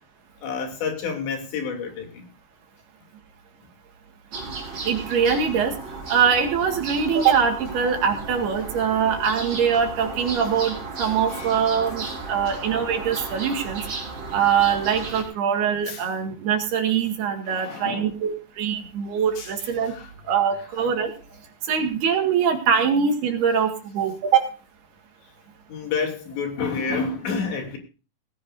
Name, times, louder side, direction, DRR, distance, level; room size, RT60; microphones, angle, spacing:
voice 1, 0.4-2.3 11.0-11.6 15.9-16.0 17.5-18.2 19.4-19.5 19.8-20.4 25.7-27.8, left 5 dB, 75° left, 5.0 m, -30 dB
sound 1, 4.3-15.2, right 3 dB, 35° right, 4.5 m, -34 dB
voice 2, 4.9-5.7 6.1-13.8 14.3-19.9 20.3-21.1 21.7-24.4, right 7 dB, 65° right, 3.7 m, -23 dB
19.0 x 15.5 x 2.6 m
omnidirectional pair, 5.2 m